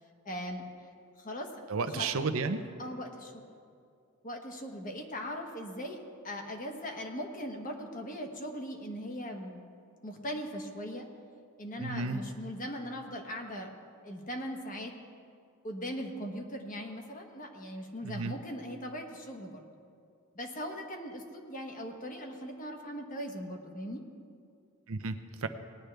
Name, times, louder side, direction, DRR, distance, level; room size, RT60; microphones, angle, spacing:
voice 1, 0.2-0.7 1.2-1.5 1.9-2.1 2.8-3.4 4.2-9.6 10.0-11.1 11.6-13.8 14.0-14.9 15.6-19.6 20.3-24.0, equal, 40° left, 3 dB, 1.2 m, -39 dB
voice 2, 1.7-2.6 11.8-12.2 18.0-18.3 24.9-25.5, right 4 dB, 65° right, 9 dB, 0.6 m, -32 dB
19.0 x 10.5 x 3.4 m, 2.4 s
head